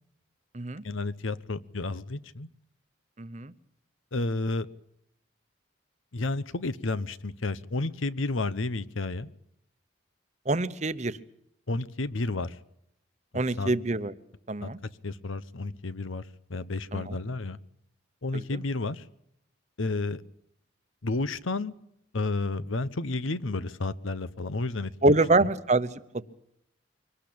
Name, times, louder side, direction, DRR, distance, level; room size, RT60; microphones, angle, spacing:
voice 1, 0.8-2.5 4.1-4.7 6.1-9.3 11.7-12.6 13.3-13.7 14.6-16.2 16.5-17.6 18.2-19.0 19.8-20.2 21.0-21.8 22.1-25.2, left 2 dB, 80° left, 16 dB, 1.0 m, -31 dB
voice 2, 3.2-3.5 10.5-11.2 13.3-14.1 14.5-14.8 16.9-17.2 18.3-18.6 25.0-25.9 26.1-26.2, right 2 dB, 35° right, 13 dB, 0.9 m, -25 dB
24.0 x 18.5 x 8.7 m, 0.74 s
head